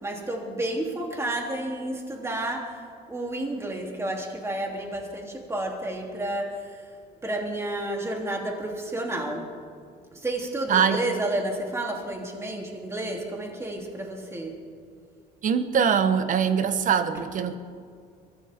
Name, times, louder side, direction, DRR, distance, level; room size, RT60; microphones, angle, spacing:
voice 1, 0.0-6.8 7.2-9.4 10.1-14.5, right 1 dB, 15° right, 0 dB, 3.2 m, -31 dB
voice 2, 10.7-11.0 15.4-17.6, right 7 dB, 50° right, 10 dB, 1.2 m, -22 dB
23.0 x 15.5 x 3.7 m, 2.3 s
cardioid pair, 110°, 17 cm